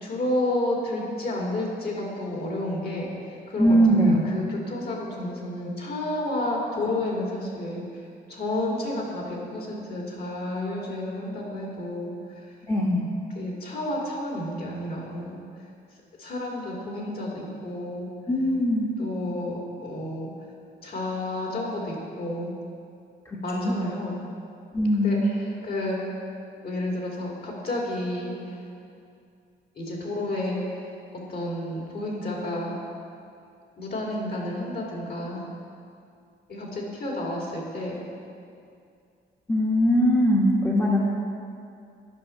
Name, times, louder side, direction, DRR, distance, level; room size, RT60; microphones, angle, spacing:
voice 1, 0.0-7.8 8.3-12.5 13.3-15.4 16.2-18.1 19.0-20.3 20.8-22.5 23.4-24.2 24.9-26.1 26.6-28.6 29.8-32.8 33.8-35.4 36.5-38.0, left 1 dB, 50° left, -2 dB, 2.5 m, -31 dB
voice 2, 3.6-4.2 12.7-13.0 18.3-18.9 23.3-23.7 24.7-25.2 39.5-41.0, equal, 15° left, -3 dB, 1.2 m, -21 dB
10.0 x 5.9 x 5.7 m, 2.4 s
cardioid pair, 90°, 20 cm